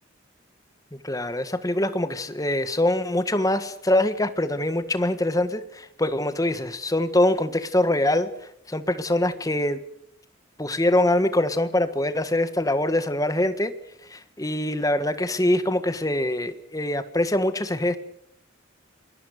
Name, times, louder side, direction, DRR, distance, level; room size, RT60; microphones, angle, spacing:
voice 1, 0.9-9.8 10.6-13.7 14.1-18.0, left 1 dB, 15° left, 11 dB, 1.5 m, -24 dB
27.5 x 22.0 x 6.6 m, 0.69 s
head